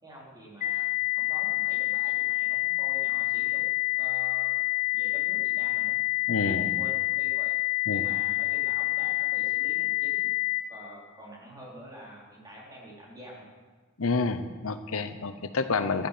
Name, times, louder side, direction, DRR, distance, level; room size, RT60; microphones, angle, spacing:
voice 1, 0.0-3.6 3.9-6.0 6.4-7.5 7.9-10.3 10.7-13.5, right 1 dB, 20° right, -4 dB, 4.3 m, -47 dB
sound 1, 0.6-10.6, left 27 dB, 40° left, 1.5 m, -27 dB
voice 2, 6.3-6.7 7.9-8.1 14.0-16.1, left 4 dB, 75° left, 10 dB, 0.8 m, -29 dB
14.5 x 12.5 x 6.7 m, 1.4 s
head